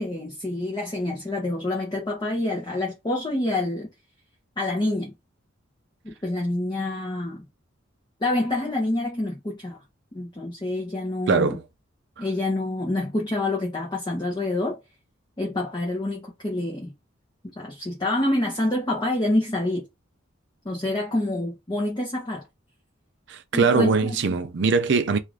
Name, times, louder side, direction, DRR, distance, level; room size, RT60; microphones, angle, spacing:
voice 1, 0.0-3.9 4.6-5.1 6.0-7.4 8.2-9.8 10.1-11.6 12.2-14.8 15.4-16.9 17.6-19.9 20.6-22.4 23.5-24.2 24.7-24.8, left 1 dB, 20° left, 0.7 m, -27 dB
voice 2, 11.3-11.6 12.2-12.3 23.3-25.2, right 4 dB, 60° right, 0.5 m, -22 dB
2.5 x 2.5 x 3.2 m
head